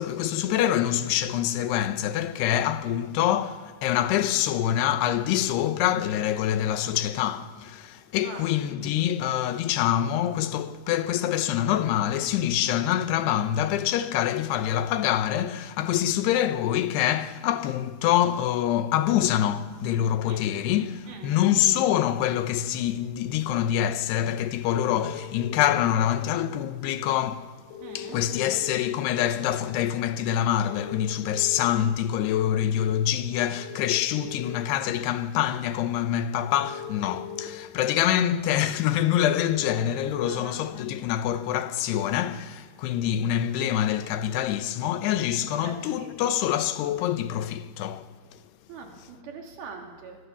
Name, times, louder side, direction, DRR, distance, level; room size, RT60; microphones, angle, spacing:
voice 1, 0.0-27.5 27.9-48.1, left 11 dB, 85° left, 3.0 m, -25 dB
voice 2, 21.1-21.4 27.8-28.2 31.7-31.9 40.2-40.6 45.6-46.1 48.7-50.2, right 4 dB, 70° right, 4.4 m, -42 dB
sound 1, 24.8-25.8 27.7-28.7 30.6-31.6 33.6-34.5 36.5-37.5 39.4-39.8, left 8 dB, 55° left, 2.1 m, -39 dB
24.0 x 19.0 x 7.1 m
omnidirectional pair, 4.7 m